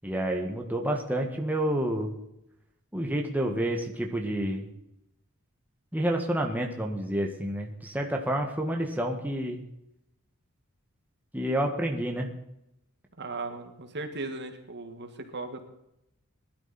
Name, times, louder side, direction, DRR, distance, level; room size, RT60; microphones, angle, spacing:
voice 1, 0.0-2.1 2.9-4.7 5.9-9.6 11.3-12.3, right 1 dB, 10° right, 1 dB, 1.7 m, -29 dB
voice 2, 13.2-15.6, right 3 dB, 50° right, 6 dB, 1.9 m, -37 dB
20.5 x 12.0 x 4.3 m, 0.84 s
head